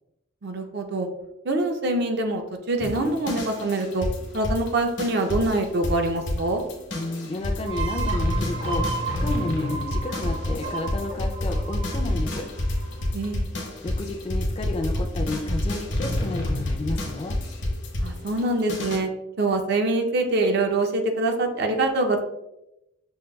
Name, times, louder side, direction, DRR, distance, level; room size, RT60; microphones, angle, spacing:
voice 1, 0.4-1.1 1.4-4.1 4.3-6.6 13.1-13.5 18.0-19.1 19.4-22.2, right 2 dB, 60° right, 4 dB, 0.5 m, -24 dB
sound 1, 2.8-19.0, left 1 dB, 75° left, 0.9 m, -29 dB
voice 2, 6.9-12.4 13.8-17.4, left 2 dB, 30° left, 3 dB, 0.3 m, -31 dB
sound 2, 7.7-13.1, right 4 dB, 75° right, 1.2 m, -34 dB
6.2 x 2.3 x 2.2 m, 0.89 s
head